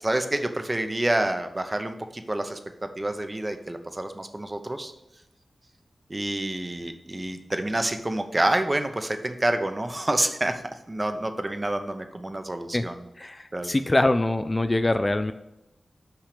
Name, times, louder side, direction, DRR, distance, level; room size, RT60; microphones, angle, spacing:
voice 1, 0.0-2.6 3.0-4.9 6.1-10.6 10.9-13.0 13.5-13.7, right 1 dB, 25° right, 7 dB, 0.7 m, -28 dB
voice 2, 13.2-15.3, left 2 dB, 25° left, 10 dB, 0.3 m, -24 dB
5.9 x 5.6 x 5.0 m, 0.91 s
wide cardioid pair, 90°, 0 cm